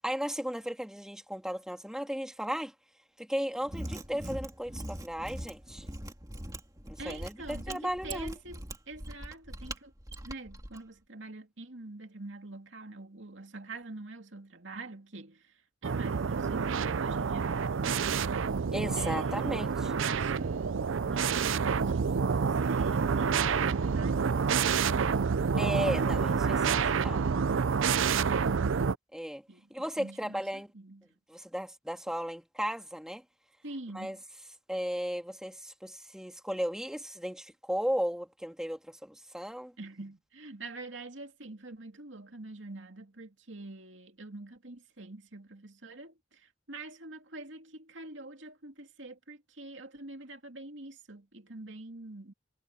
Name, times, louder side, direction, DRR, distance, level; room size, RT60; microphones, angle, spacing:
voice 1, 0.0-2.7 3.2-5.8 6.9-8.3 18.7-19.9 25.6-27.2 29.1-29.4 29.7-30.7 31.3-33.2 33.9-34.2 34.7-39.7, equal, 5° right, 2.5 m, -35 dB
Mechanisms, 3.6-10.8, right 1 dB, 20° right, 2.3 m, -41 dB
voice 2, 7.0-9.9 10.2-18.4 19.0-19.5 19.8-25.1 25.5-25.9 26.4-27.6 29.5-31.2 33.6-34.2 39.8-52.3, right 2 dB, 70° right, 2.7 m, -46 dB
sound 1, 15.8-28.9, right 6 dB, 90° right, 0.5 m, -28 dB
head